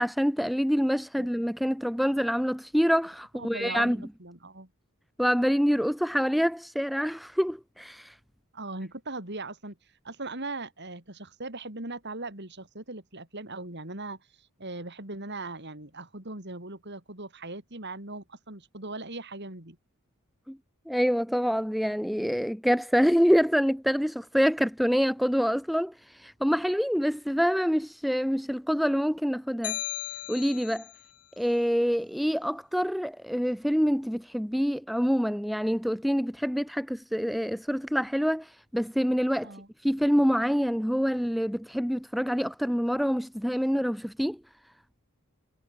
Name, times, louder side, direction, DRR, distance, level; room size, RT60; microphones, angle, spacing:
voice 1, 0.0-4.1 5.2-8.2 20.5-20.6 20.9-29.8 30.3-30.9 31.4-39.6 39.8-44.4, equal, ahead, 0.6 m, -26 dB
voice 2, 3.4-4.7 8.5-9.8 10.0-19.8 39.4-39.7, right 2 dB, 50° right, 4.6 m, -39 dB
sound 1, 29.6-31.0, left 12 dB, 90° left, 4.5 m, -36 dB
head